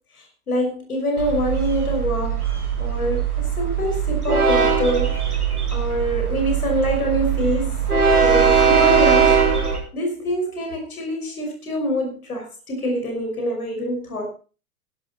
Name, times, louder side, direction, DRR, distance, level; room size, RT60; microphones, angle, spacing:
voice 1, 0.5-3.2 3.6-5.1 5.7-7.9 8.2-9.4 9.9-14.3, equal, 75° left, 2 dB, 5.7 m, -25 dB
Train, 1.2-9.8, right 6 dB, 90° right, 3.8 m, -20 dB
15.5 x 12.0 x 4.3 m, 0.37 s
figure-of-eight pair, 90°, 44 cm